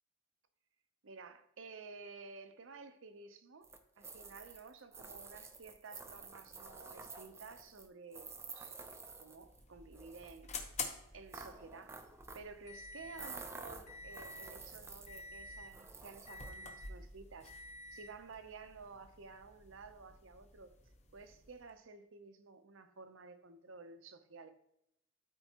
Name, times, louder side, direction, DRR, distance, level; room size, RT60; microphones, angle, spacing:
voice 1, 1.0-3.7 4.0-8.8 9.2-10.5 11.1-12.0 12.3-17.6 17.9-20.7 21.1-24.5, right 4 dB, 75° right, 0.7 m, -53 dB
sound 1, 3.6-9.6 9.9-10.4 11.3-12.6 13.1-15.4 15.7-16.5, right 4 dB, 15° right, 0.5 m, -50 dB
sound 2, 9.3-21.7, left 4 dB, 35° left, 0.9 m, -50 dB
12.5 x 4.5 x 2.9 m
head